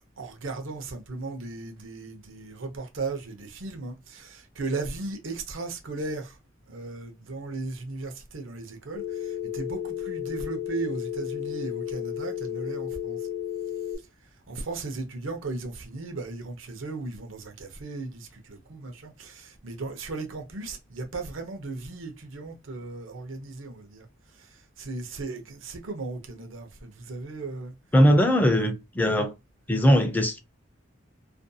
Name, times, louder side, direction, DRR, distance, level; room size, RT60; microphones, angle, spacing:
voice 1, 0.2-6.4 6.7-13.3 14.5-24.1 24.3-27.7, right 3 dB, 85° right, 0.7 m, -36 dB
Telephone, 9.0-14.0, left 10 dB, 80° left, 0.7 m, -33 dB
voice 2, 27.9-29.3 29.7-30.4, equal, 10° left, 0.4 m, -20 dB
2.5 x 2.2 x 2.6 m
head